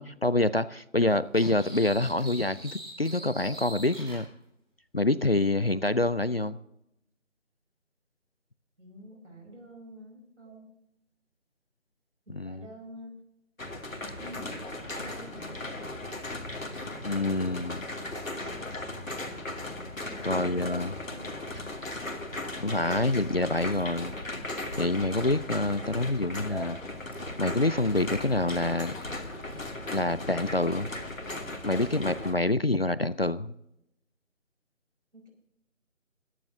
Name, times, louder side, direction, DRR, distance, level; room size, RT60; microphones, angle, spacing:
voice 1, 0.0-4.3 4.9-6.6 12.3-12.7 17.0-17.8 20.2-20.9 22.6-24.1 24.7-26.8 27.4-28.9 29.9-30.9 31.6-33.5, left 2 dB, 50° left, 16 dB, 0.4 m, -26 dB
sound 1, 1.3-4.2, right 1 dB, 20° right, 4.5 m, -43 dB
voice 2, 8.8-10.7 12.3-13.1 14.2-16.0 20.0-21.3 35.1-35.3, equal, 65° right, 2 dB, 5.7 m, -47 dB
sound 2, 13.6-32.3, left 2 dB, 85° left, 2.7 m, -37 dB
Cat, 20.8-29.8, equal, 15° left, 1.5 m, -49 dB
23.0 x 10.5 x 2.7 m, 0.80 s
figure-of-eight pair, 175°, 39 cm